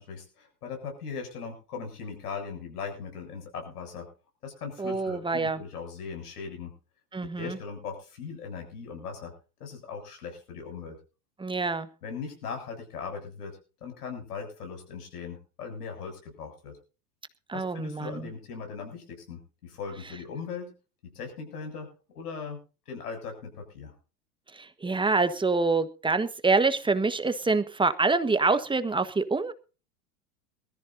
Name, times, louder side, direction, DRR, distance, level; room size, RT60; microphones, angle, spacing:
voice 1, 0.0-4.1 4.4-6.7 7.4-9.3 9.6-11.0 12.0-16.8 17.5-20.7 21.0-22.6 22.9-23.9, left 5 dB, 80° left, 3 dB, 7.4 m, -39 dB
voice 2, 4.8-5.6 7.1-7.6 11.4-11.9 17.5-18.2 24.5-29.5, right 3 dB, 10° right, 11 dB, 1.3 m, -26 dB
22.0 x 14.0 x 2.7 m, 0.34 s
hypercardioid pair, 100°, 45 cm